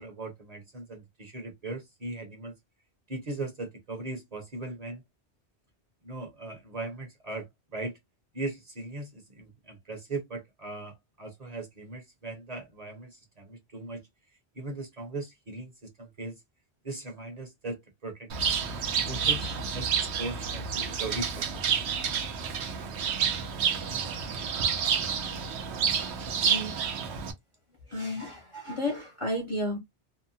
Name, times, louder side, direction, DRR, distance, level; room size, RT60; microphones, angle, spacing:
voice 1, 0.0-2.5 3.1-5.0 6.0-8.0 8.3-14.0 14.5-15.7 16.0-16.4 16.8-18.6 19.0-21.4, right 2 dB, 40° right, 0.9 m, -38 dB
Bird, 18.3-27.3, right 7 dB, 75° right, 0.9 m, -29 dB
voice 2, 26.4-26.8 27.9-29.8, left 1 dB, 35° left, 0.6 m, -32 dB
2.8 x 2.1 x 2.6 m
omnidirectional pair, 1.1 m